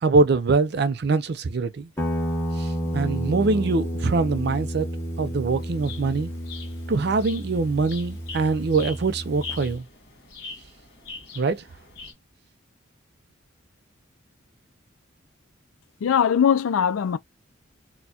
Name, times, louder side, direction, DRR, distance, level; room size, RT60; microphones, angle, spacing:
voice 1, 0.0-1.9 2.6-4.9 5.2-6.3 6.9-9.9 11.3-11.6, right 3 dB, 55° right, 0.4 m, -23 dB
Guitar, 2.0-9.8, equal, 10° left, 1.0 m, -31 dB
sound 1, 5.6-12.1, left 4 dB, 55° left, 1.8 m, -42 dB
voice 2, 16.0-17.2, left 8 dB, 85° left, 0.4 m, -20 dB
4.2 x 2.2 x 2.8 m
head